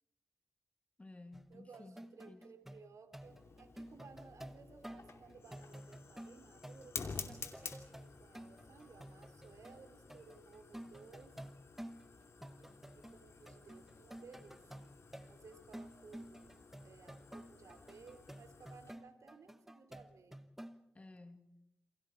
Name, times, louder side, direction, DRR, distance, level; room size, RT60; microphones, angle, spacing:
voice 1, 1.0-2.4 20.9-21.5, left 2 dB, 25° left, 8 dB, 2.2 m, -55 dB
sound 1, 1.3-9.8 10.1-12.1 12.4-13.2 13.5-20.8, right 1 dB, 5° right, 1.1 m, -52 dB
voice 2, 1.5-11.4 12.6-14.9 15.3-20.4, right 5 dB, 75° right, 7 dB, 3.5 m, -59 dB
Fire, 3.2-18.9, left 4 dB, 60° left, 2.7 m, -52 dB
29.0 x 28.0 x 4.7 m, 0.78 s
wide cardioid pair, 100°, 5 cm